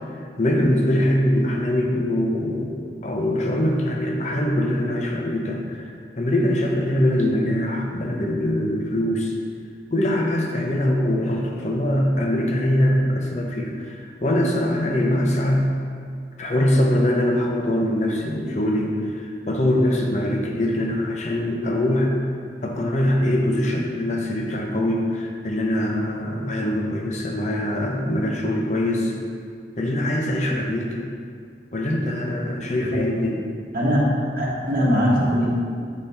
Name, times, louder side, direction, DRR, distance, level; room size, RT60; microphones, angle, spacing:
voice 1, 0.4-2.7 3.0-5.8 6.2-9.3 9.9-15.7 16.4-18.9 19.2-22.3 22.6-29.1 29.8-31.0 31.7-33.4, left 1 dB, 40° left, 0 dB, 0.7 m, -22 dB
voice 2, 34.4-35.5, equal, 50° right, -5 dB, 1.1 m, -20 dB
7.4 x 4.1 x 3.4 m, 2.2 s
head